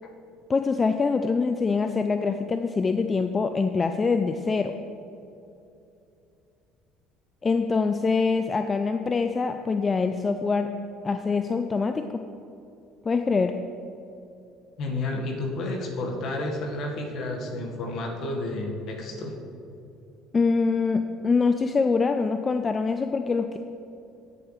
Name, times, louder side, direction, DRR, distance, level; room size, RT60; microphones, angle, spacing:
voice 1, 0.5-4.7 7.4-10.7 11.0-12.0 13.0-13.5 20.3-23.6, left 4 dB, 30° left, 7 dB, 0.5 m, -24 dB
voice 2, 14.8-19.3, left 2 dB, 55° left, 1 dB, 1.7 m, -31 dB
16.5 x 7.2 x 3.4 m, 2.7 s
hypercardioid pair, 60°, 0 cm